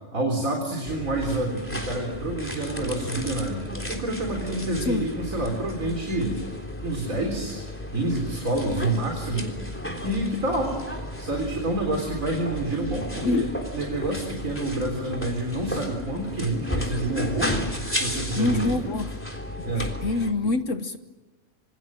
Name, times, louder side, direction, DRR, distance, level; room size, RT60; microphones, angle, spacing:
voice 1, 0.1-6.4 6.8-7.6 7.9-9.5 10.0-10.8 11.2-13.5 13.7-17.5 17.9-18.9 19.6-19.9 20.4-20.5, right 2 dB, 75° right, 4.4 m, -28 dB
sound 1, 0.8-20.3, left 1 dB, 10° left, 3.5 m, -33 dB
voice 2, 18.4-19.1 19.8-21.0, left 3 dB, 65° left, 1.5 m, -25 dB
27.0 x 26.0 x 7.6 m
omnidirectional pair, 1.4 m